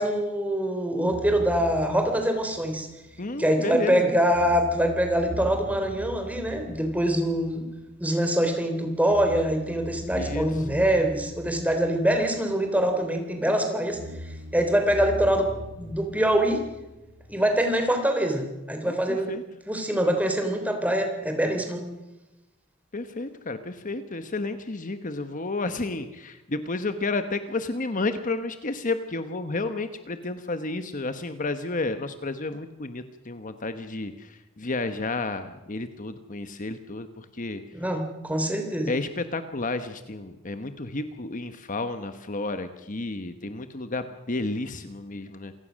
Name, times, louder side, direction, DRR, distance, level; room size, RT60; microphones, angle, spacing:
voice 1, 0.0-2.9 3.4-7.7 8.0-14.0 14.5-16.6 17.3-19.3 19.7-21.8 37.7-38.9, right 1 dB, 5° right, 5 dB, 3.5 m, -24 dB
sound 1, 1.1-3.9 4.3-8.5 9.1-13.2 13.9-17.9, equal, 85° right, 2.1 m, -40 dB
voice 2, 3.2-4.1 10.1-10.5 18.8-19.4 22.9-37.6 38.9-45.5, left 2 dB, 40° left, 9 dB, 1.1 m, -31 dB
27.5 x 17.5 x 6.4 m, 1.0 s
head